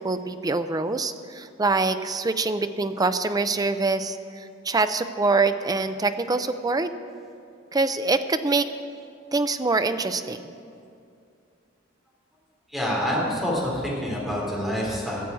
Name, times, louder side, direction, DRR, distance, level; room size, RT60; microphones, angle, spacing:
voice 1, 0.0-6.9 7.7-8.7 9.3-10.5, right 3 dB, 20° right, 10 dB, 0.5 m, -25 dB
voice 2, 12.7-15.2, equal, ahead, -5 dB, 3.7 m, -27 dB
14.0 x 7.7 x 8.3 m, 2.4 s
head